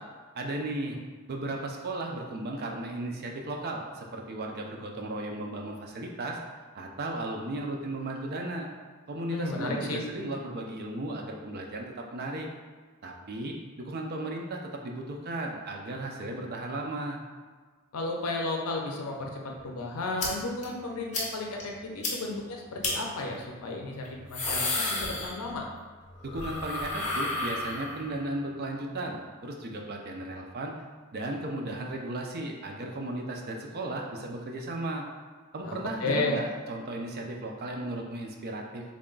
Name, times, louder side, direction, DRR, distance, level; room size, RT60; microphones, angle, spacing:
voice 1, 0.3-1.0 1.3-6.4 6.7-8.7 9.1-12.5 13.0-17.2 26.2-30.7 31.1-35.0 35.5-38.8, right 1 dB, 45° right, 1 dB, 0.5 m, -35 dB
voice 2, 9.3-10.0 17.9-25.7 35.6-36.3, left 2 dB, 65° left, 1 dB, 0.5 m, -33 dB
sound 1, 20.2-20.3 20.6-20.7 21.1-21.3 21.6-21.7 22.0-22.1 22.8-22.9 24.0-25.7 26.0-28.2, left 2 dB, 35° left, 0.8 m, -31 dB
3.5 x 2.2 x 3.8 m, 1.5 s
head